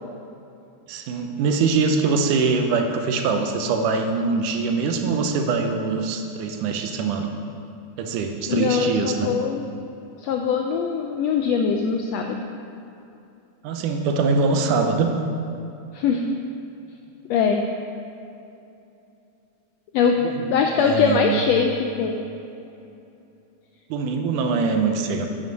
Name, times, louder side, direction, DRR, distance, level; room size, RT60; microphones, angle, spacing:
voice 1, 0.9-7.3 8.0-9.3 13.6-15.1 20.2-21.4 23.9-25.3, right 4 dB, 85° right, 5 dB, 2.3 m, -23 dB
voice 2, 8.5-9.7 10.2-12.5 15.9-16.3 17.3-17.6 19.9-20.2 20.5-21.7 22.0-22.2, left 6 dB, 85° left, 3 dB, 1.4 m, -22 dB
9.5 x 8.3 x 5.3 m, 2.8 s
omnidirectional pair, 3.6 m